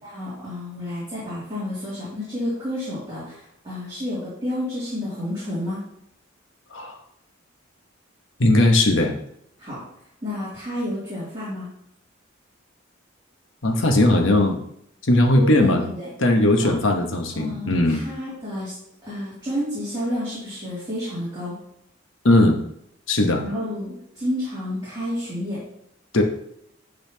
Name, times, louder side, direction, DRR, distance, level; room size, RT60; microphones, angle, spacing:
voice 1, 0.0-5.8 9.6-9.8 10.2-11.7 15.3-16.1 16.6-16.7 17.3-18.7 19.0-21.6 23.4-25.6, left 1 dB, 25° right, -10 dB, 2.6 m, -30 dB
voice 2, 8.4-9.2 13.6-14.6 15.0-15.8 16.2-18.0 22.2-22.6 23.1-23.4 26.1-26.2, left 1 dB, 75° left, 3 dB, 1.1 m, -18 dB
10.5 x 4.1 x 2.8 m, 0.75 s
head